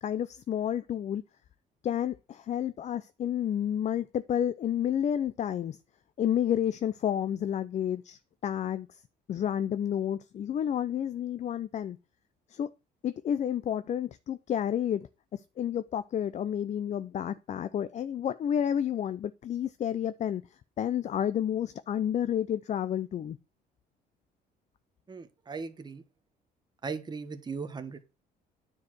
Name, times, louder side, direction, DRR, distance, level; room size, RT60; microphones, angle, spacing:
voice 1, 0.0-1.2 1.8-5.8 6.2-8.9 9.3-12.0 12.5-12.7 13.0-20.4 20.8-23.4, left 9 dB, 45° left, 0.5 m, -30 dB
voice 2, 25.1-26.0 26.8-28.0, right 5 dB, 25° right, 1.3 m, -38 dB
9.7 x 4.7 x 6.1 m
cardioid pair, 110°, 17 cm